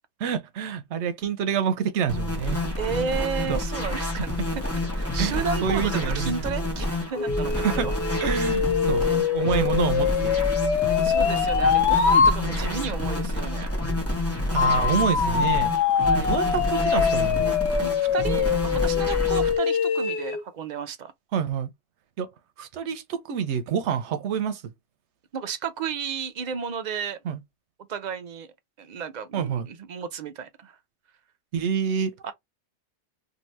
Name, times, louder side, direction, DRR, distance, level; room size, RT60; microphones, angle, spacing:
voice 1, 0.2-2.6 3.5-3.6 4.4-4.5 5.2-6.3 7.6-7.9 8.2-10.3 14.5-15.8 16.2-17.5 21.3-21.7 22.2-22.3 22.6-24.7 27.2-27.4 29.3-29.7 31.5-32.1, right 7 dB, 85° right, 0.9 m, -27 dB
sound 1, 2.1-19.5, left 1 dB, 15° left, 0.9 m, -28 dB
voice 2, 2.8-4.6 4.9-7.9 8.2-8.4 9.1-9.3 11.0-13.7 16.0-16.3 17.8-21.1 25.3-27.2 27.9-30.8 32.2-32.3, right 6 dB, 60° right, 0.5 m, -33 dB
sound 2, 7.1-12.4 14.6-20.4, left 7 dB, 80° left, 1.0 m, -23 dB
2.8 x 2.6 x 3.1 m
omnidirectional pair, 1.1 m